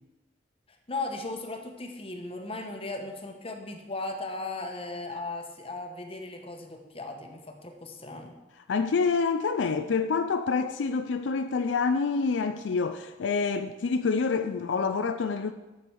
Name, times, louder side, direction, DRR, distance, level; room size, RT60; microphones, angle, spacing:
voice 1, 0.9-8.3, left 2 dB, 30° left, 1.1 m, -37 dB
voice 2, 8.7-15.5, left 4 dB, 80° left, 0.4 m, -27 dB
8.6 x 7.1 x 4.7 m
head